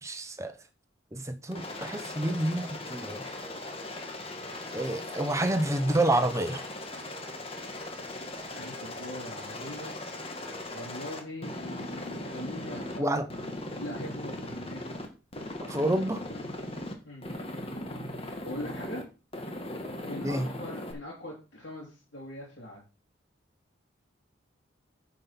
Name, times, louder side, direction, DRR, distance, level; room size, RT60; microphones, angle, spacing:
voice 1, 0.0-0.5 1.1-3.3 4.7-6.6 13.0-13.3 15.7-16.2 20.2-20.5, right 1 dB, 15° right, 1.1 m, -28 dB
Aircraft, 1.5-13.0 13.3-15.1 15.3-16.9 17.2-19.0 19.3-20.9, left 1 dB, 30° left, 1.9 m, -39 dB
voice 2, 8.4-9.9 10.7-13.2 13.8-15.0 17.0-17.3 18.4-19.0 20.0-22.8, left 1 dB, 65° left, 3.2 m, -42 dB
10.0 x 5.4 x 6.0 m
head